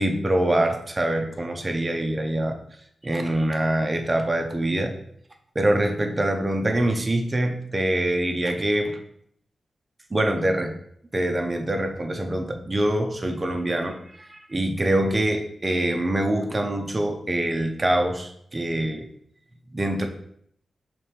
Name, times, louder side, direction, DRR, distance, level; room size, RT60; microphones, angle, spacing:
voice 1, 0.0-2.6 3.0-5.0 5.5-9.0 10.1-10.7 11.1-19.1 19.7-20.1, right 1 dB, 30° right, 4 dB, 0.7 m, -24 dB
4.7 x 3.4 x 3.1 m, 0.68 s
cardioid pair, 65°, 0 cm